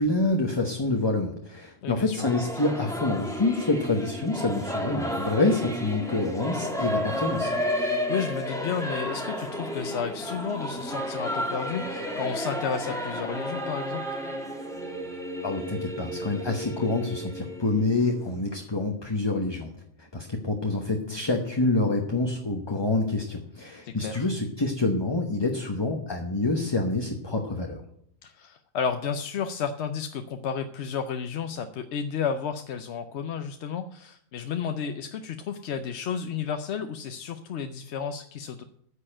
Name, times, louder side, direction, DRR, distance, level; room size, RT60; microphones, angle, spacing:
voice 1, 0.0-7.5 15.4-19.7 20.0-27.8, left 2 dB, 20° left, 3 dB, 1.0 m, -27 dB
voice 2, 1.8-2.2 7.7-14.2 21.1-21.2 23.8-24.3 28.2-38.6, left 7 dB, 60° left, 7 dB, 0.9 m, -32 dB
Singing / Musical instrument, 2.2-18.5, equal, ahead, 1.6 m, -32 dB
9.9 x 6.7 x 8.8 m, 0.69 s
omnidirectional pair, 1.4 m